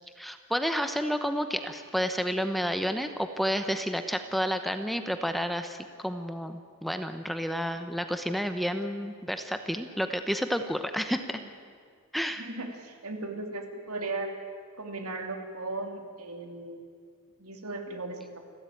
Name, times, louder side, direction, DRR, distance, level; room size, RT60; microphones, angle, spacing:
voice 1, 0.2-11.4 12.1-12.5, equal, ahead, 8 dB, 0.9 m, -30 dB
voice 2, 12.4-14.3 14.8-16.8 17.4-18.4, right 2 dB, 80° right, 4 dB, 2.9 m, -37 dB
28.5 x 13.0 x 9.1 m, 2.1 s
head